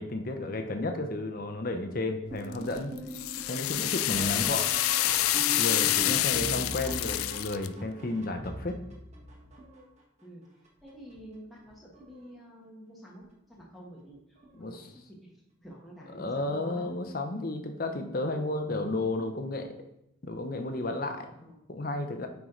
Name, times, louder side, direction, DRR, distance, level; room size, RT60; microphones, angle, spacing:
voice 1, 0.0-2.9 3.5-4.6 5.6-8.8 14.5-14.9 16.1-19.9 20.2-22.3, left 2 dB, 45° left, 6 dB, 0.7 m, -33 dB
sound 1, 2.3-10.0 10.6-11.2 11.6-12.3 13.5-13.6 14.4-14.7 16.8-17.0 19.3-19.4, equal, 35° right, 1.5 m, -41 dB
sound 2, 2.5-7.7, left 15 dB, 85° left, 0.3 m, -27 dB
voice 2, 3.7-4.0 4.3-4.6 6.5-7.1 10.2-10.4 10.8-15.3 15.6-16.9 17.3-17.4 21.4-21.6, equal, ahead, -5 dB, 1.2 m, -49 dB
9.3 x 4.7 x 3.8 m, 0.82 s
head